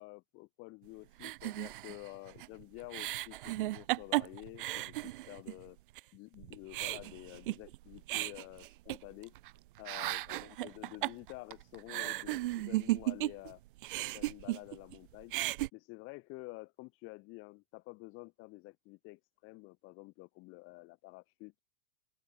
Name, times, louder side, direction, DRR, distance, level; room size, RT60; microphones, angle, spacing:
voice 1, 0.0-5.8 6.1-9.3 9.8-13.6 14.0-15.3 15.7-21.6, left 24 dB, 45° left, 6.0 m, -50 dB
sound 1, 1.2-5.6 6.0-6.1 6.4-9.5 9.8-13.5 13.8-15.0 15.2-15.7, right 17 dB, 60° right, 3.0 m, -35 dB
open air
hypercardioid pair, 110°, 29 cm